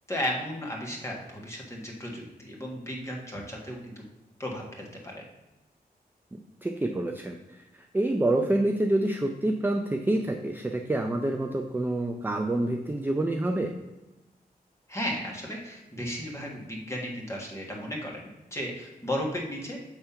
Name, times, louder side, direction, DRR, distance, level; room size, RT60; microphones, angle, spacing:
voice 1, 0.1-4.0 4.4-5.3 14.9-18.2 18.5-19.8, equal, 15° left, -2 dB, 1.5 m, -34 dB
voice 2, 6.6-7.4 7.7-13.7, right 1 dB, 10° right, 3 dB, 0.4 m, -27 dB
6.9 x 3.4 x 5.6 m, 1.0 s
wide cardioid pair, 125°, 16 cm